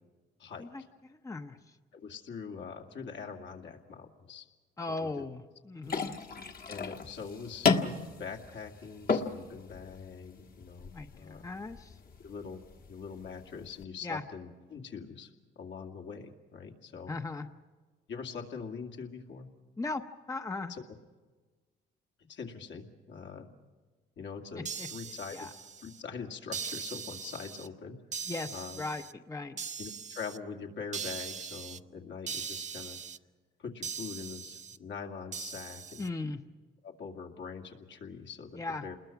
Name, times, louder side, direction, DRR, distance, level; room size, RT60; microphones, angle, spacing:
voice 1, 0.6-1.6 4.8-6.2 10.9-12.0 14.0-14.2 17.1-17.5 19.8-20.0 20.3-20.7 24.6-24.9 25.3-25.5 28.3-29.6 36.0-36.4 38.5-38.9, left 3 dB, 15° left, 7 dB, 0.8 m, -38 dB
voice 2, 1.9-4.5 5.0-5.2 6.7-11.4 12.2-12.6 12.9-15.3 15.6-17.1 18.1-19.5 20.7-20.8 22.3-23.5 24.2-25.5 25.8-28.0 28.5-28.8 29.8-33.0 33.6-36.1 36.8-39.0, left 5 dB, 70° left, 1 dB, 2.4 m, -43 dB
sound 1, 5.8-13.8, left 5 dB, 45° left, 1.5 m, -35 dB
sound 2, 24.6-26.0 26.5-27.7 28.1-29.1 29.6-30.4 30.9-31.8 32.3-33.2 33.8-34.8 35.3-36.1, right 6 dB, 35° right, 0.7 m, -40 dB
28.0 x 21.0 x 5.9 m, 1.4 s
cardioid pair, 90°, 20 cm